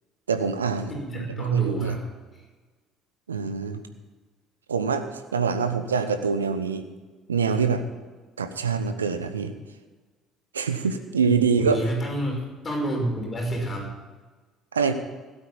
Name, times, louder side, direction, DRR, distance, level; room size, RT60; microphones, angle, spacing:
voice 1, 0.3-2.0 3.3-3.8 4.7-5.1 5.3-6.9 7.3-7.8 8.4-9.5 10.5-11.8 14.7-14.9, right 5 dB, 80° right, 9 dB, 0.9 m, -25 dB
voice 2, 0.9-2.0 11.3-13.9, right 1 dB, 30° left, -1 dB, 5.6 m, -29 dB
16.5 x 8.6 x 7.2 m, 1.3 s
figure-of-eight pair, 55°, 0 cm